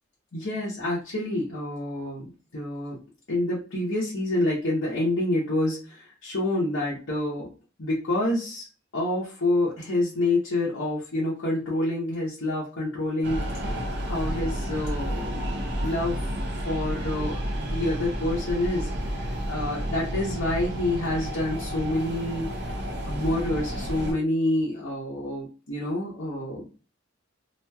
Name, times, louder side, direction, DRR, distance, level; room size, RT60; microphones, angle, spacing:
voice 1, 0.3-3.0 3.3-7.5 7.8-8.7 8.9-13.5 14.0-16.2 16.6-18.9 19.2-22.5 23.1-26.6, left 1 dB, 70° left, -6 dB, 0.8 m, -28 dB
sound 1, 13.2-24.1, equal, 60° right, 0.7 m, -31 dB
3.0 x 2.4 x 2.2 m, 0.35 s
head